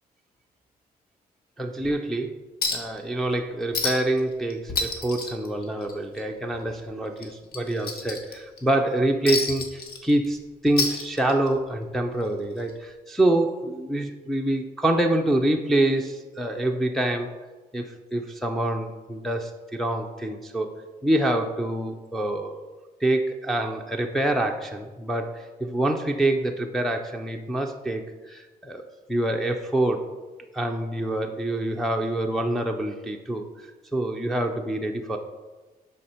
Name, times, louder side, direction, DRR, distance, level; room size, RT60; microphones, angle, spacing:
voice 1, 1.6-2.4 2.7-17.3 17.7-20.7 21.0-22.6 23.0-28.8 29.1-30.1 30.5-33.7 33.9-35.2, right 1 dB, ahead, 1 dB, 0.4 m, -26 dB
Chink clink, 2.6-3.0 3.3-3.4 3.7-4.2 4.5-6.2 6.5-6.7 7.2-8.6 9.3-10.4 10.7-11.6 12.7-12.8, left 4 dB, 80° left, 1.3 m, -29 dB
11.5 x 4.2 x 4.3 m, 1.2 s
cardioid pair, 165°, 16 cm